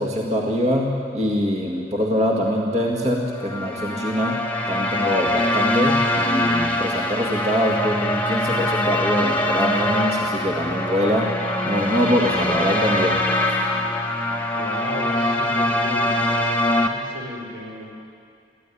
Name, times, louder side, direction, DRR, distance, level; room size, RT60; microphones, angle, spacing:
voice 1, 0.0-4.4 4.7-11.3 11.6-13.2, equal, 40° right, -1 dB, 2.0 m, -23 dB
sound 1, 3.4-16.9, left 1 dB, 10° left, 1.5 m, -23 dB
voice 2, 14.6-17.9, left 1 dB, 90° right, -1 dB, 5.3 m, -34 dB
22.5 x 15.0 x 10.0 m, 2.4 s
head